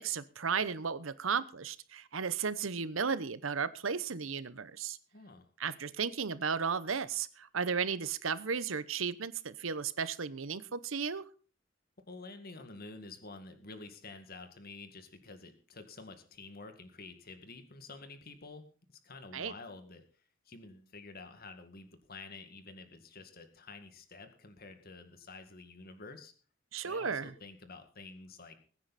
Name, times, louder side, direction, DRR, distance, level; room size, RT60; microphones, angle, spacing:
voice 1, 0.0-5.0 5.6-11.2 19.3-19.5 26.7-27.3, right 6 dB, 90° right, 15 dB, 0.9 m, -34 dB
voice 2, 5.1-5.5 12.1-20.0 20.5-26.3 26.8-28.6, left 3 dB, 50° left, 7 dB, 2.1 m, -49 dB
21.5 x 9.5 x 4.2 m, 0.38 s
head